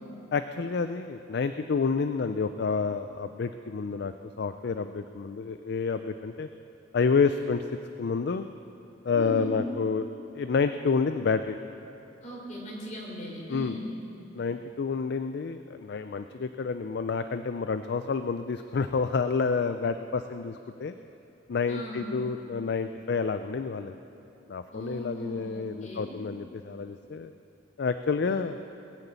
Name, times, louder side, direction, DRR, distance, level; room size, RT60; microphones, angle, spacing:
voice 1, 0.3-6.5 6.9-7.6 8.0-8.4 9.0-10.1 10.3-11.6 13.5-13.7 14.3-20.9 21.5-24.0 24.5-27.3 27.8-28.6, left 5 dB, 60° left, 9 dB, 0.4 m, -29 dB
voice 2, 9.1-9.6 12.2-13.9 21.7-22.1 24.7-26.3, right 1 dB, 40° left, -3 dB, 4.0 m, -38 dB
20.5 x 6.9 x 8.1 m, 3.0 s
head